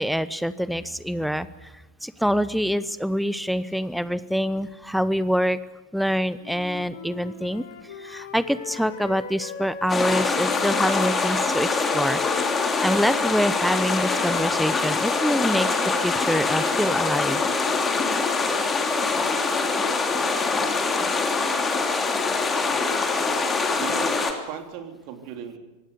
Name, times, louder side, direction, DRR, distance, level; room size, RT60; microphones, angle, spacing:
voice 1, 0.0-1.7 2.0-5.6 5.9-7.6 8.0-12.2 12.6-17.4, equal, ahead, 16 dB, 0.9 m, -25 dB
Wind instrument woodwind instrument, 6.4-10.1 10.4-14.6, left 5 dB, 60° left, 4.6 m, -39 dB
sound 1, 9.9-24.3, left 4 dB, 15° left, 3.0 m, -24 dB
voice 2, 23.8-25.6, right 8 dB, 45° right, 6 dB, 3.3 m, -36 dB
24.0 x 18.0 x 8.3 m, 1.0 s
figure-of-eight pair, 90°, 0 cm